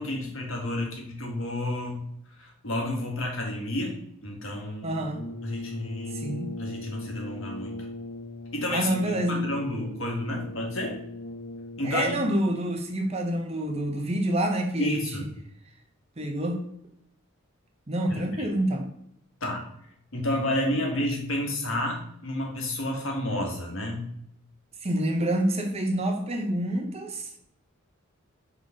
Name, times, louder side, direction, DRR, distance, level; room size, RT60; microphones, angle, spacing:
voice 1, 0.0-2.1 2.4-4.0 4.2-5.0 5.4-6.3 6.6-7.8 8.5-11.0 11.8-12.2 14.8-15.2 18.1-18.5 19.4-19.6 20.1-24.1, left 1 dB, 70° left, 0 dB, 1.8 m, -30 dB
voice 2, 4.8-5.2 6.1-6.5 8.7-9.5 11.8-15.2 16.2-16.6 17.9-18.9 20.9-21.0 24.8-27.3, right 1 dB, 30° right, 3 dB, 0.8 m, -27 dB
Brass instrument, 5.1-12.3, left 2 dB, 45° left, 1.0 m, -39 dB
5.9 x 3.7 x 5.1 m, 0.72 s
head